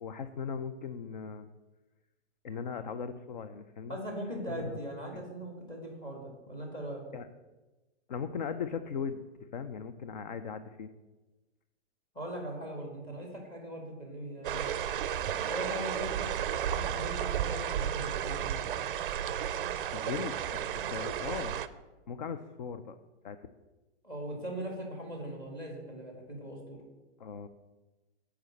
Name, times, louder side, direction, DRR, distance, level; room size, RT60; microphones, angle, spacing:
voice 1, 0.0-1.5 2.4-4.0 4.5-4.8 5.1-5.2 7.1-7.3 8.1-9.2 9.5-10.9 19.9-21.6 22.1-23.0 23.2-23.5 27.2-27.5, left 6 dB, 40° left, 10 dB, 0.4 m, -38 dB
voice 2, 3.9-7.0 12.1-14.8 15.5-16.3 16.7-18.5 24.0-26.8, right 1 dB, 15° left, 1 dB, 1.9 m, -40 dB
sound 1, 14.4-21.7, right 9 dB, 50° right, 0.5 m, -33 dB
8.1 x 5.0 x 7.5 m, 1.2 s
hypercardioid pair, 165°, 35 cm